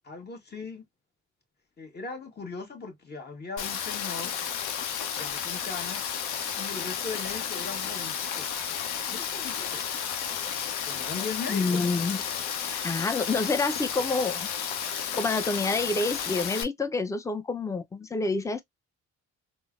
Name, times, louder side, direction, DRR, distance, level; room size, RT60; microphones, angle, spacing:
voice 1, 0.0-0.9 1.8-4.3 5.1-6.0 6.6-8.5 9.1-9.8 10.8-11.8, left 4 dB, 35° left, 1.3 m, -38 dB
Rain, 3.6-16.6, left 8 dB, 85° left, 0.7 m, -32 dB
voice 2, 11.5-12.2 12.6-14.5 15.2-18.6, left 3 dB, 10° left, 0.5 m, -28 dB
3.7 x 2.0 x 2.3 m
cardioid pair, 90°, 30 cm